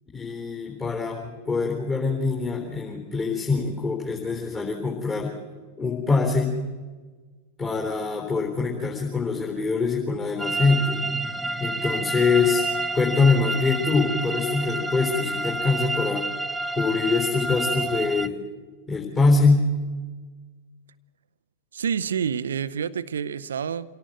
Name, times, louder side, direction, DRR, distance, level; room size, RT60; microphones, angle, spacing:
voice 1, 0.1-5.3 5.8-6.6 7.6-11.0 11.6-12.6 12.9-16.2 16.8-18.3 18.9-19.7, left 4 dB, 20° left, -1 dB, 3.8 m, -24 dB
sound 1, 10.4-18.3, right 2 dB, 5° right, 0.8 m, -29 dB
voice 2, 21.7-24.0, right 7 dB, 65° right, 16 dB, 0.7 m, -28 dB
27.0 x 17.5 x 7.9 m, 1.4 s
figure-of-eight pair, 90°, 0 cm